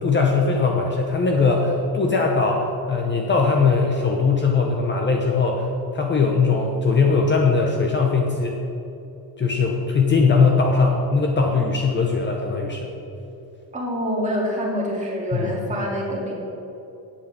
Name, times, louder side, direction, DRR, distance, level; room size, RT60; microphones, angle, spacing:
voice 1, 0.0-5.7 5.9-8.6 9.4-12.9 15.3-15.5, left 4 dB, 30° left, 1 dB, 0.8 m, -20 dB
voice 2, 13.7-16.3, equal, 20° right, -3 dB, 2.3 m, -26 dB
8.4 x 8.2 x 7.0 m, 2.9 s
cardioid pair, 170°, 38 cm